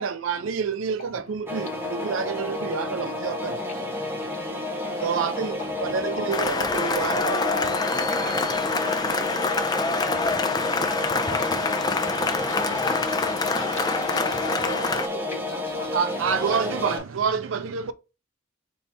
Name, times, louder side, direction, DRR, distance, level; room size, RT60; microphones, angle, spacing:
voice 1, 0.0-3.6 5.0-7.4 15.9-17.9, right 6 dB, 90° right, 0.4 m, -28 dB
sound 1, 1.5-17.0, left 2 dB, 10° right, 0.7 m, -30 dB
voice 2, 4.9-6.3 7.0-7.2 7.6-8.3 8.8-8.9 10.1-14.1, left 3 dB, 35° left, 0.8 m, -44 dB
Cheering / Applause, 6.3-15.1, left 4 dB, 20° left, 0.3 m, -26 dB
voice 3, 7.9-10.0, right 4 dB, 50° right, 0.8 m, -40 dB
voice 4, 14.1-16.0 16.3-17.1, left 3 dB, 75° left, 0.8 m, -39 dB
4.0 x 2.8 x 3.3 m
head